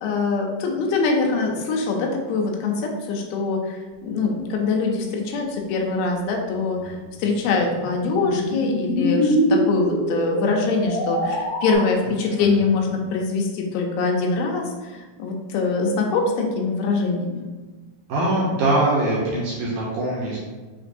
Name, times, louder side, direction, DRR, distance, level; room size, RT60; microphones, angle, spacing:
voice 1, 0.0-17.5, left 4 dB, 90° left, 1 dB, 2.6 m, -23 dB
sound 1, 6.8-11.8, equal, 70° left, 2.5 m, -24 dB
voice 2, 18.1-20.4, right 1 dB, 75° right, -6 dB, 1.9 m, -22 dB
6.2 x 2.9 x 2.6 m, 1.3 s
omnidirectional pair, 4.3 m